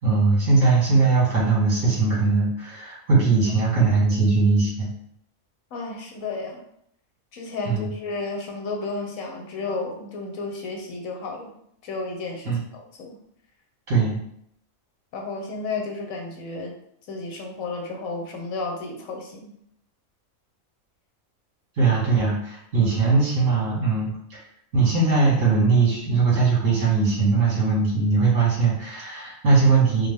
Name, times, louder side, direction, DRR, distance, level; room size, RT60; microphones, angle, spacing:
voice 1, 0.0-4.9 7.6-7.9 12.5-12.6 13.9-14.2 21.8-24.4 24.7-30.1, right 4 dB, 65° right, -7 dB, 2.2 m, -20 dB
voice 2, 5.7-6.6 7.3-11.5 11.8-13.2 15.1-16.8 17.1-19.5, left 3 dB, 75° left, 1 dB, 1.2 m, -32 dB
4.9 x 2.2 x 3.5 m, 0.70 s
omnidirectional pair, 1.4 m